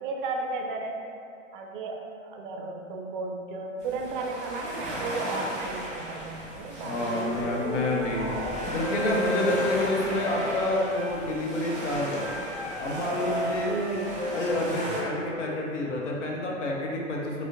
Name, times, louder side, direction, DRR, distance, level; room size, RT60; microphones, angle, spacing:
voice 1, 0.0-1.0 1.5-7.8 13.7-14.2, right 3 dB, 45° right, 2 dB, 0.4 m, -34 dB
sound 1, 3.8-15.0, right 1 dB, 20° right, 1.0 m, -37 dB
voice 2, 6.8-8.3 8.7-12.2 12.8-13.7 14.3-17.5, left 2 dB, 65° left, -2 dB, 0.8 m, -28 dB
Wind instrument woodwind instrument, 7.1-11.2 12.2-15.5, right 1 dB, 50° left, 1.3 m, -34 dB
sound 2, 7.4-10.0, equal, 20° left, 0.9 m, -40 dB
4.9 x 2.2 x 2.5 m, 2.6 s
figure-of-eight pair, 100°, 38 cm